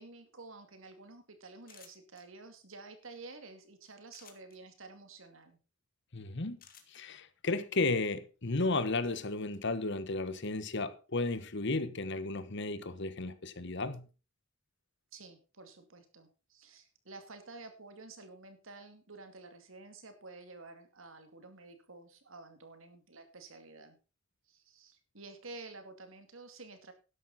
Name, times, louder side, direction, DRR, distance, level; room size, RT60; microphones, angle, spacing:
voice 1, 0.0-5.6 15.1-24.0 24.5-26.9, right 3 dB, 70° right, 2.4 m, -51 dB
sound 1, 1.6-2.2 4.1-4.6 6.6-7.0, left 8 dB, 45° left, 2.1 m, -56 dB
voice 2, 6.1-6.6 6.9-14.1, left 3 dB, 60° left, 1.2 m, -34 dB
12.0 x 11.0 x 4.2 m
head